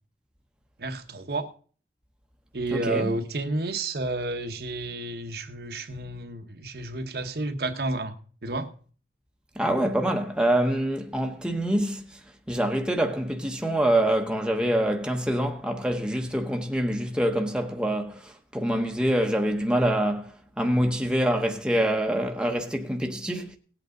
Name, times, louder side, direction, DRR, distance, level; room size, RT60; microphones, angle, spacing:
voice 1, 0.8-1.5 2.5-8.2 8.4-8.7, right 2 dB, 60° right, 1.0 m, -31 dB
voice 2, 2.7-3.1 9.6-12.0 12.5-23.6, right 1 dB, 5° right, 1.0 m, -25 dB
18.0 x 8.2 x 3.8 m
head